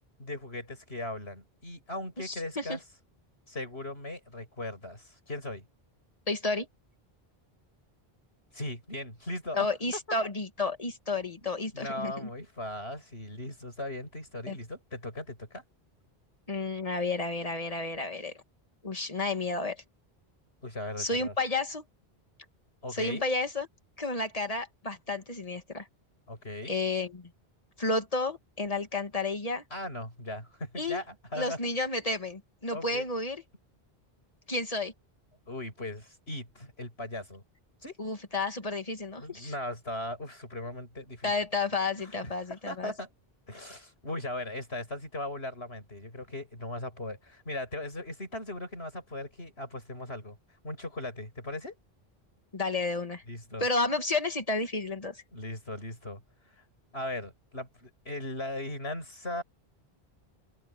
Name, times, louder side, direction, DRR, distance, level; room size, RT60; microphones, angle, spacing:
voice 1, 0.2-2.8 3.5-5.6 8.5-9.7 11.4-15.6 20.6-21.3 22.8-23.2 26.3-26.7 29.7-31.6 32.7-33.0 35.5-37.4 37.8-38.0 39.2-41.3 42.0-43.1 43.5-50.4 50.6-51.8 53.3-53.6 55.3-56.2 56.6-56.7 56.9-59.4, left 1 dB, 80° left, 8.2 m, -38 dB
voice 2, 2.2-2.8 6.3-6.7 9.5-12.3 14.5-14.6 16.5-18.3 18.8-19.8 21.0-21.8 22.9-23.7 24.0-25.9 26.7-27.3 27.8-29.6 30.8-31.0 31.3-33.4 34.5-34.9 38.0-39.5 41.2-42.9 52.5-53.2 53.6-55.2, left 3 dB, 35° left, 2.2 m, -31 dB
open air
omnidirectional pair, 1.1 m